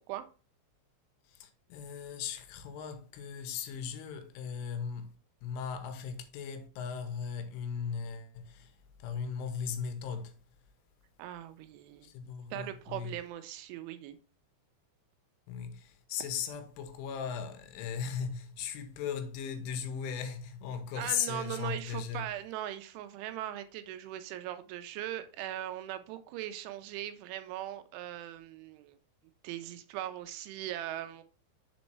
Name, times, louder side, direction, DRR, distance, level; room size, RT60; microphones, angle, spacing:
voice 1, 1.3-5.1 5.4-10.4 12.0-13.1 15.5-22.3, left 7 dB, 85° left, 3.3 m, -38 dB
voice 2, 11.2-12.1 12.5-14.2 20.9-29.0 29.4-31.2, right 12 dB, 80° right, 2.9 m, -40 dB
7.0 x 4.2 x 4.4 m
omnidirectional pair, 5.6 m